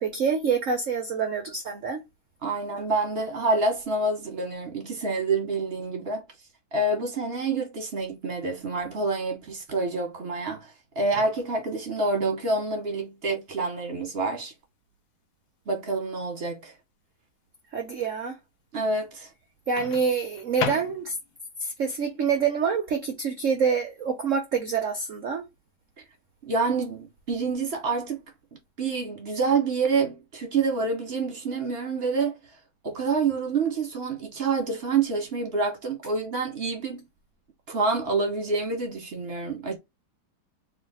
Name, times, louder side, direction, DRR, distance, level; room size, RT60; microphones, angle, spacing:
voice 1, 0.0-2.0 17.7-18.4 19.7-21.2 21.6-25.4, right 6 dB, 75° right, 0.7 m, -26 dB
voice 2, 2.4-6.2 6.7-14.5 15.7-16.7 18.7-19.3 26.5-28.2 28.8-32.4 32.8-37.0 37.7-39.8, right 3 dB, 45° right, 0.8 m, -27 dB
Microwave oven, 11.1-11.7 13.7-14.0 19.8-21.4, left 7 dB, 85° left, 1.4 m, -35 dB
3.1 x 2.6 x 3.9 m
omnidirectional pair, 2.2 m